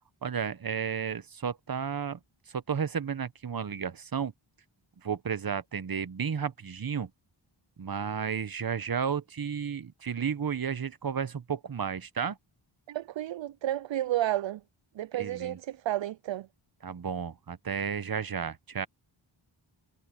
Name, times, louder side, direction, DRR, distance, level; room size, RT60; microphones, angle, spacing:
voice 1, 0.2-2.2 2.5-4.3 5.0-7.1 7.8-12.4 15.1-15.6 16.8-18.9, right 7 dB, 45° right, 1.0 m, -32 dB
voice 2, 12.9-14.6 15.0-16.5, right 13 dB, 65° right, 0.5 m, -31 dB
cardioid pair, 50°, 49 cm